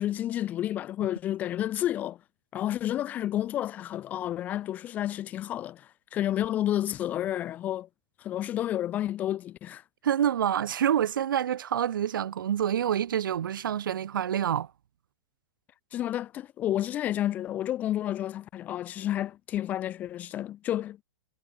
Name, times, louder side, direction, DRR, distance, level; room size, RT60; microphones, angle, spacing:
voice 1, 0.0-2.2 2.5-7.9 8.2-9.8 15.9-21.0, left 12 dB, 15° left, 0.5 m, -30 dB
voice 2, 10.0-14.7, right 9 dB, 80° right, 4.0 m, -27 dB
supercardioid pair, 175°, 11 cm